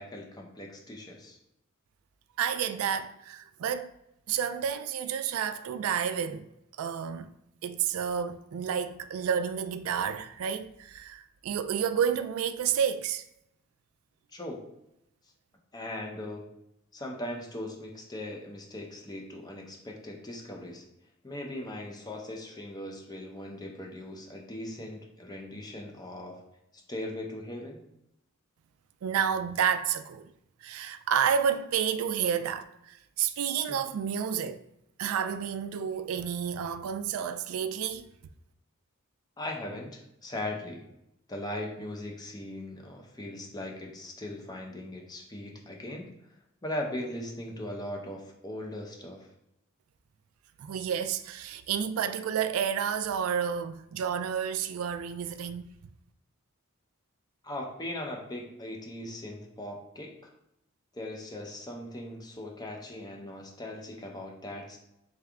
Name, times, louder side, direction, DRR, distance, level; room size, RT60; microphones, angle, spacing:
voice 1, 0.0-1.4 14.3-14.6 15.7-16.5 16.9-20.8 21.2-26.4 26.9-27.8 33.7-33.8 39.4-40.8 41.3-46.1 46.6-49.3 57.4-60.3 60.9-64.8, left 1 dB, 20° left, 0.6 m, -39 dB
voice 2, 2.4-3.9 4.3-6.5 6.8-7.3 7.6-13.2 29.0-30.3 30.6-34.6 35.0-38.1 50.6-55.7, right 8 dB, 75° right, 0.3 m, -30 dB
3.4 x 3.3 x 3.6 m
head